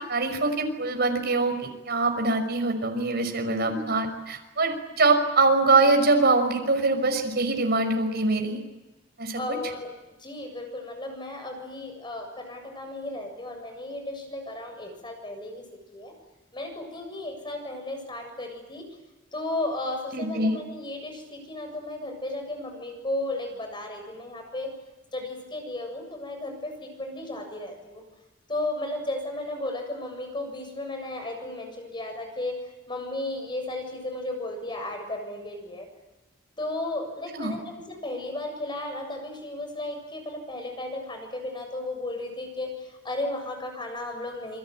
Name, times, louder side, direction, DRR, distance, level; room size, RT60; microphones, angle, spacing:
voice 1, 0.1-8.6 9.2-9.4 20.1-20.5 37.3-37.6, right 3 dB, 55° right, 5 dB, 5.9 m, -23 dB
voice 2, 3.6-3.9 9.3-9.9 10.2-15.6 15.9-16.1 16.5-18.9 19.3-24.7 25.1-28.0 28.5-35.9 36.6-44.6, left 2 dB, 25° left, 4 dB, 7.4 m, -34 dB
28.0 x 23.0 x 9.1 m, 1.1 s
head